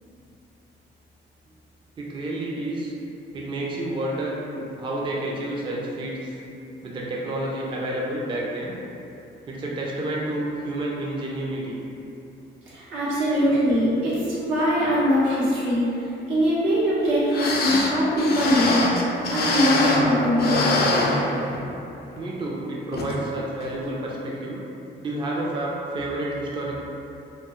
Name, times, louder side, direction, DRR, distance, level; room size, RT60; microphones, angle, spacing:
voice 1, 2.0-3.0 3.3-6.4 6.8-8.7 9.5-11.8 22.1-24.6 25.0-26.8, right 1 dB, 25° right, -4 dB, 0.4 m, -30 dB
voice 2, 12.7-18.8 19.3-20.8, equal, 90° right, -9 dB, 0.8 m, -22 dB
sound 1, 17.0-17.1 17.3-20.1 20.4-21.8 22.2-22.3 22.9-23.2 23.6-23.7, left 2 dB, 50° left, 0.4 m, -24 dB
2.2 x 2.0 x 2.8 m, 2.7 s
cardioid pair, 90°, 20 cm